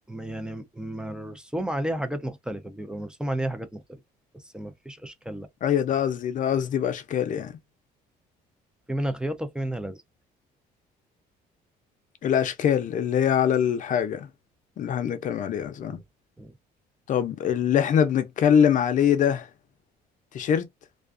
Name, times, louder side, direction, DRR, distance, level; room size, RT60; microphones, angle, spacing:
voice 1, 0.1-4.0 4.3-5.5 8.9-10.0 15.8-16.0 16.4-16.5, right 1 dB, 5° right, 0.5 m, -32 dB
voice 2, 5.6-7.6 12.2-14.3 14.8-16.0 17.1-19.5 20.3-20.7, left 8 dB, 50° left, 0.6 m, -23 dB
2.4 x 2.3 x 2.4 m
cardioid pair, 110°, 17 cm